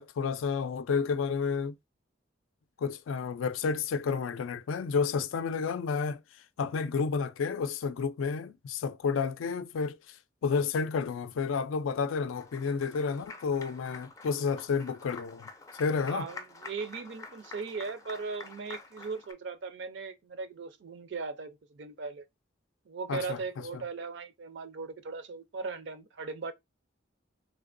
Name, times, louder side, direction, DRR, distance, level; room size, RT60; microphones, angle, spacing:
voice 1, 0.0-1.7 2.8-6.2 6.6-10.2 10.4-15.5 15.8-16.3 23.1-23.4, left 5 dB, 85° left, 0.4 m, -30 dB
Applause, 12.4-19.3, left 3 dB, 15° left, 0.4 m, -48 dB
voice 2, 16.0-22.2 22.9-26.5, right 4 dB, 65° right, 0.5 m, -38 dB
3.2 x 2.9 x 2.5 m
head